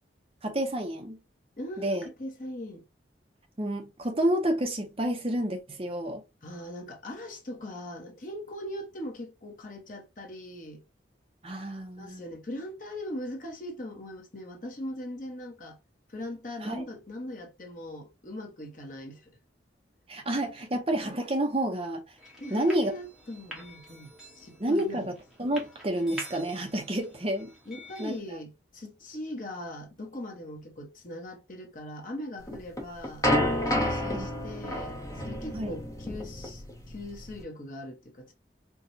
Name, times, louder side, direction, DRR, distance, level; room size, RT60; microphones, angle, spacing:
voice 1, 0.4-1.2 1.8-2.0 3.6-6.2 11.4-12.2 16.6-16.8 20.1-22.0 22.5-22.9 24.6-27.5 28.0-28.4 34.1-34.3 35.5-35.8, right 1 dB, 30° right, 0.7 m, -29 dB
voice 2, 1.6-2.9 6.4-10.8 12.0-15.8 16.1-19.3 22.4-25.1 27.6-33.3 33.7-38.3, left 1 dB, 45° left, 1.0 m, -40 dB
sound 1, 22.2-28.2, equal, 5° right, 1.1 m, -47 dB
sound 2, 32.5-37.4, left 1 dB, 20° left, 0.9 m, -30 dB
4.6 x 2.3 x 2.7 m
head